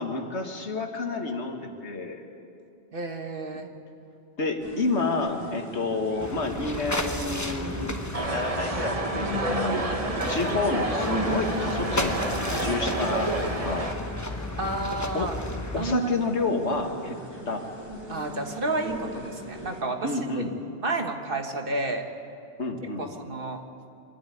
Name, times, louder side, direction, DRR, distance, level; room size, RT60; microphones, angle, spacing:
voice 1, 0.0-2.2 4.4-9.0 9.3-12.2 12.5-13.9 15.1-15.3 15.7-17.2 17.5-17.6 20.0-20.5 22.6-23.1, left 3 dB, 75° left, 3 dB, 2.0 m, -29 dB
voice 2, 2.9-3.7 14.6-15.3 15.8-16.1 18.1-20.4 20.8-22.0 23.0-23.6, right 2 dB, 50° right, 4 dB, 1.6 m, -31 dB
sound 1, 4.6-19.8, equal, 15° right, 3.2 m, -39 dB
sound 2, 6.2-16.0, left 2 dB, 15° left, 1.1 m, -34 dB
sound 3, 8.1-13.9, right 2 dB, 30° right, 1.3 m, -29 dB
25.0 x 13.0 x 9.2 m, 2.6 s
omnidirectional pair, 1.2 m